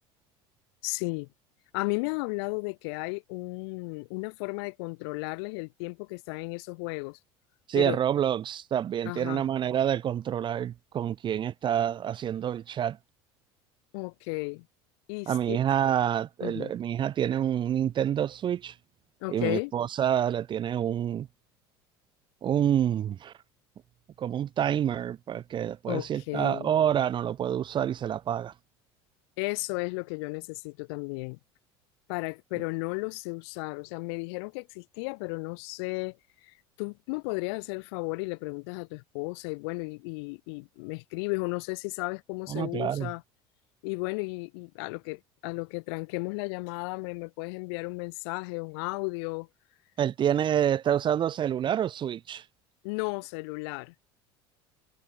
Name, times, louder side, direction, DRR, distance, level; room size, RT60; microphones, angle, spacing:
voice 1, 0.8-1.3 1.7-7.2 7.7-8.0 9.0-9.4 13.9-14.7 15.1-15.6 16.4-16.7 19.2-19.7 25.9-26.7 29.4-31.4 32.1-36.2 36.4-43.2 43.8-49.5 52.8-53.9, left 30 dB, 75° left, 4.3 m, -34 dB
voice 2, 7.7-13.0 15.3-18.7 19.3-21.3 22.4-23.3 24.2-28.5 42.5-43.1 50.0-52.4, right 10 dB, 35° right, 0.5 m, -27 dB
hypercardioid pair, 85°, 14 cm